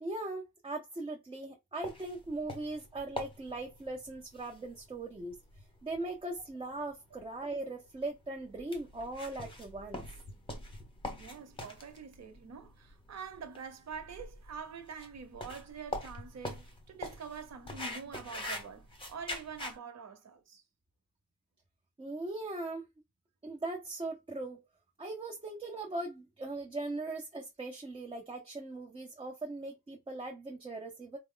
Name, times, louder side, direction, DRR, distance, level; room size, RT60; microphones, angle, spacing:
voice 1, 0.0-5.4 5.8-10.0 22.0-22.8 23.4-24.6 25.0-31.2, right 2 dB, 15° right, 0.6 m, -39 dB
sound 1, 1.8-19.8, left 2 dB, 15° left, 1.0 m, -44 dB
voice 2, 11.2-20.6, right 6 dB, 45° right, 1.0 m, -46 dB
4.2 x 2.1 x 3.8 m
cardioid pair, 150°, 37 cm